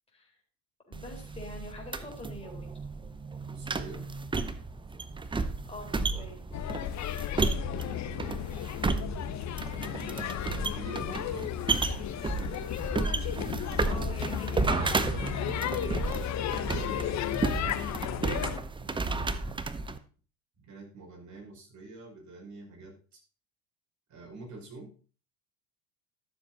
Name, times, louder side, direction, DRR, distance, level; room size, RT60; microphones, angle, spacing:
voice 1, 0.9-2.7 5.3-6.4 13.8-16.2 16.5-17.4, left 1 dB, 15° left, -1 dB, 4.0 m, -45 dB
sound 1, 0.9-20.0, right 3 dB, 10° right, 0.7 m, -33 dB
voice 2, 3.5-4.1 7.3-8.5 9.8-11.5 18.8-20.0 20.6-23.2 24.1-24.9, right 3 dB, 35° right, 0 dB, 5.3 m, -47 dB
sound 2, 6.5-18.6, left 11 dB, 35° left, 0.9 m, -34 dB
13.0 x 7.1 x 4.0 m, 0.39 s
hypercardioid pair, 95°, 46 cm